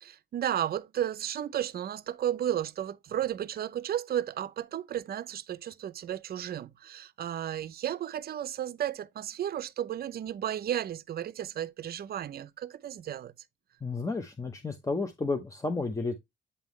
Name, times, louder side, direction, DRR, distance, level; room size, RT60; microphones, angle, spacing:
voice 1, 0.0-13.3, right 11 dB, 50° right, 0.5 m, -33 dB
voice 2, 13.8-16.2, left 3 dB, 15° left, 0.8 m, -32 dB
8.3 x 3.6 x 3.1 m
cardioid pair, 90°, 20 cm